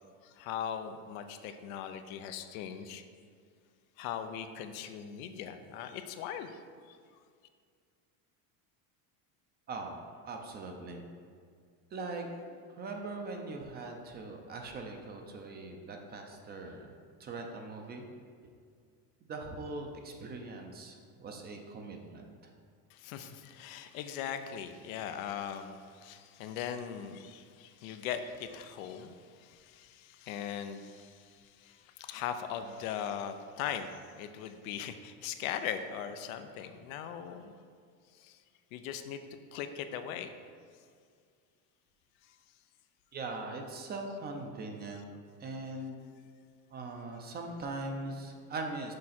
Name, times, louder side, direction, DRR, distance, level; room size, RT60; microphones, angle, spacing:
voice 1, 0.2-3.0 4.0-6.6 6.9-7.0 22.9-37.5 38.2-38.4 38.7-39.2 39.5-40.3, left 8 dB, 90° left, 8 dB, 0.6 m, -40 dB
voice 2, 9.7-11.0 11.9-16.9 17.2-18.0 19.3-22.5 43.1-45.1 45.4-46.0 46.7-48.9, right 2 dB, 25° right, 3 dB, 0.5 m, -41 dB
6.6 x 4.7 x 4.2 m, 2.1 s
cardioid pair, 145°, 40 cm